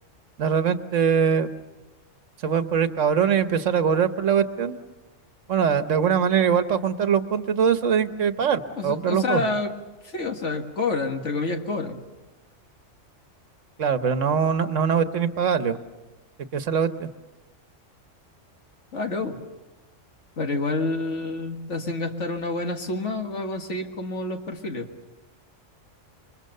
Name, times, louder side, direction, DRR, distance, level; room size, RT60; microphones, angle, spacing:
voice 1, 0.4-1.5 2.4-4.7 5.5-9.4 13.8-15.8 16.5-17.1, right 7 dB, 75° right, 11 dB, 1.4 m, -22 dB
voice 2, 8.8-9.7 10.0-12.0 18.9-19.4 20.4-24.9, left 3 dB, 65° left, 4 dB, 2.1 m, -28 dB
28.0 x 23.0 x 6.7 m, 1.1 s
omnidirectional pair, 1.3 m